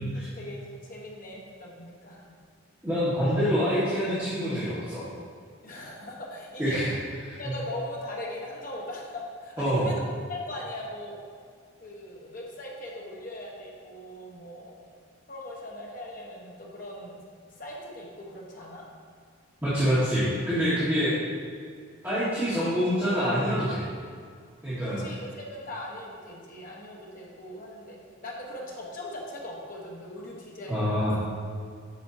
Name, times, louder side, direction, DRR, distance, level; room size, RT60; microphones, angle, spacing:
voice 1, 0.1-2.3 5.6-6.8 7.4-10.0 10.3-11.1 11.8-14.8 15.3-17.2 17.6-18.9 20.8-20.9 25.0-31.2, left 1 dB, 40° left, -3 dB, 1.2 m, -40 dB
voice 2, 2.8-5.0 6.6-6.9 7.3-7.4 9.6-9.9 19.6-21.1 22.0-23.8 24.6-25.0 30.7-31.2, equal, 10° right, -14 dB, 1.7 m, -26 dB
8.2 x 6.7 x 2.8 m, 2.1 s
head